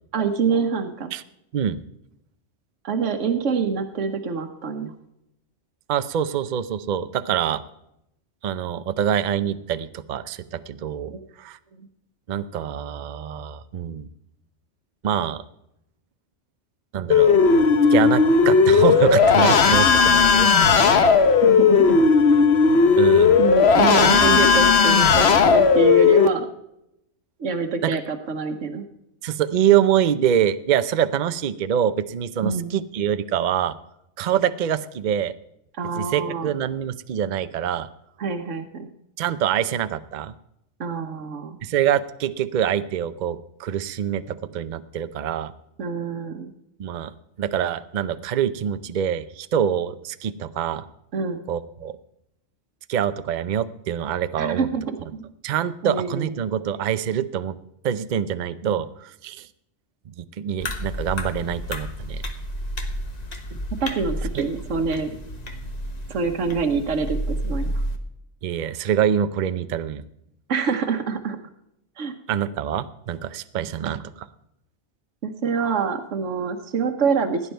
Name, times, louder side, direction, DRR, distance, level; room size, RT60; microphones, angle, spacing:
voice 1, 0.1-1.1 2.8-4.9 11.1-11.2 11.8-11.9 21.4-22.0 23.4-26.5 27.4-28.9 32.4-32.7 35.8-36.5 38.2-38.9 40.8-41.6 45.8-46.5 51.1-51.4 54.4-55.2 55.8-56.3 58.6-58.8 63.8-65.1 66.1-67.7 70.5-71.4 72.0-72.1 75.2-77.4, right 5 dB, 80° right, 5 dB, 1.4 m, -25 dB
voice 2, 5.9-7.6 8.4-11.1 11.4-11.6 12.3-14.1 15.0-15.4 16.9-17.4 17.9-20.5 20.9-21.1 23.0-23.4 27.8-27.9 29.2-33.8 34.2-35.3 36.0-37.9 39.2-40.3 41.6-45.5 46.8-50.9 51.5-51.9 52.9-54.7 55.4-57.6 57.8-59.5 60.1-62.2 64.3-64.4 68.4-70.0 72.3-74.3, right 9 dB, 50° right, 13 dB, 0.6 m, -25 dB
sound 1, 17.1-26.3, left 5 dB, 60° left, 1.2 m, -16 dB
sound 2, 60.6-68.0, equal, 35° left, 1.3 m, -31 dB
16.5 x 9.9 x 4.5 m, 0.80 s
omnidirectional pair, 1.3 m